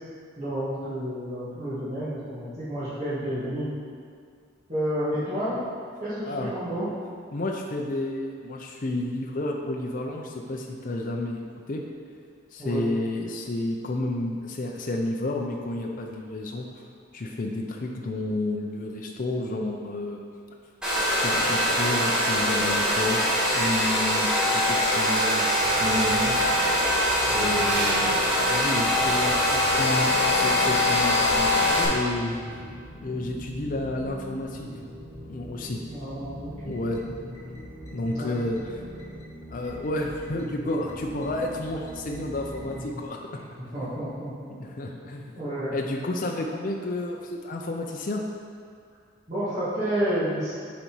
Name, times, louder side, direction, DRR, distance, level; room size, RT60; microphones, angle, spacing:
voice 1, 0.4-3.7 4.7-5.6 6.0-6.9 12.6-13.0 35.9-36.8 38.1-38.4 43.3-43.4 43.7-44.6 45.4-45.8 49.3-50.5, equal, 35° right, -14 dB, 1.8 m, -30 dB
voice 2, 7.3-11.4 11.7-11.9 12.5-16.7 17.1-20.2 21.2-26.6 27.3-32.4 33.0-34.7 35.2-35.8 36.7-37.1 37.9-38.8 39.5-43.4 44.6-45.4 45.7-48.2, left 2 dB, 40° left, 1 dB, 0.5 m, -31 dB
Domestic sounds home sounds, 20.8-31.9, left 1 dB, 5° right, 1.3 m, -23 dB
sound 1, 25.6-43.0, left 1 dB, 15° left, 1.1 m, -41 dB
7.3 x 4.1 x 4.6 m, 2.2 s
head